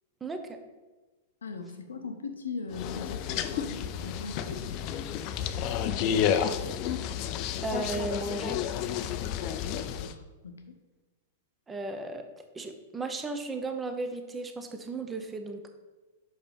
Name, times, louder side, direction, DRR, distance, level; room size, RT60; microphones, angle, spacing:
voice 1, 0.2-0.6 7.6-8.6 11.7-12.2 12.5-15.7, right 3 dB, 15° right, 6 dB, 0.9 m, -35 dB
voice 2, 1.4-4.7 9.6-10.8, left 4 dB, 85° left, 6 dB, 0.8 m, -40 dB
sound 1, 2.7-10.1, left 8 dB, 45° left, 0.5 m, -31 dB
6.0 x 5.1 x 5.1 m, 1.2 s
hypercardioid pair, 110°, 0 cm